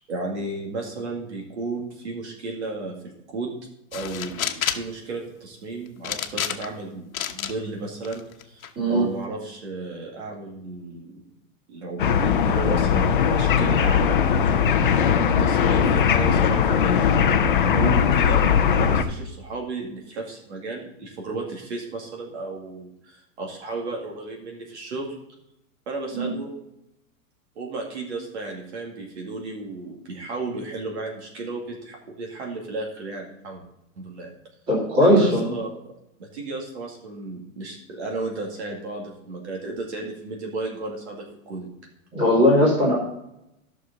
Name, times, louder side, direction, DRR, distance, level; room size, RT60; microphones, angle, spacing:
voice 1, 0.1-3.0 3.3-3.5 3.9-11.2 11.7-14.8 15.4-17.1 18.1-18.4 18.7-25.1 25.9-26.6 27.6-33.6 34.0-34.3 35.0-35.7 36.2-41.7, right 3 dB, 55° right, 0 dB, 2.2 m, -34 dB
sound 1, 3.9-4.9 6.0-6.8 7.1-7.5 8.0-8.7, left 10 dB, 90° left, 1.1 m, -29 dB
voice 2, 8.8-9.1 17.7-18.0 26.1-26.3 34.7-35.5 42.1-43.0, equal, 15° right, -6 dB, 2.5 m, -19 dB
sound 2, 12.0-19.0, left 7 dB, 40° left, 0.6 m, -19 dB
12.5 x 6.3 x 4.0 m, 0.84 s
hypercardioid pair, 180°, 41 cm